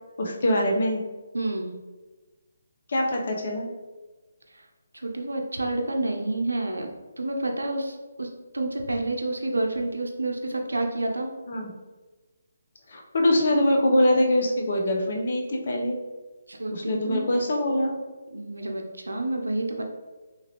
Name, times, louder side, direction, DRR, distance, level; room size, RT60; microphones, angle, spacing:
voice 1, 0.2-1.0 2.9-3.7 11.5-11.7 12.9-16.0 16.7-18.0, left 1 dB, 55° left, 1 dB, 0.7 m, -23 dB
voice 2, 1.3-1.7 5.0-6.9 7.2-8.3 8.5-11.3 16.5-17.6 18.3-19.8, right 2 dB, 85° right, 2 dB, 0.5 m, -29 dB
3.0 x 2.5 x 2.9 m, 1.2 s
figure-of-eight pair, 150°, 0 cm